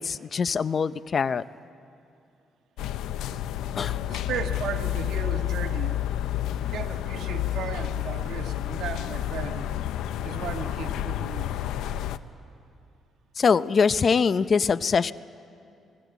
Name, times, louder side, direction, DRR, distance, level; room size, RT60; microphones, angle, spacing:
voice 1, 0.0-1.4 3.8-4.0 13.4-15.1, left 5 dB, 45° left, 16 dB, 0.6 m, -23 dB
sound 1, 2.8-12.2, left 12 dB, 90° left, 0.7 m, -30 dB
voice 2, 4.1-6.0 6.6-9.8 10.2-11.7, right 8 dB, 75° right, 6 dB, 1.4 m, -36 dB
27.0 x 19.0 x 8.2 m, 2.6 s
cardioid pair, 90°, 0 cm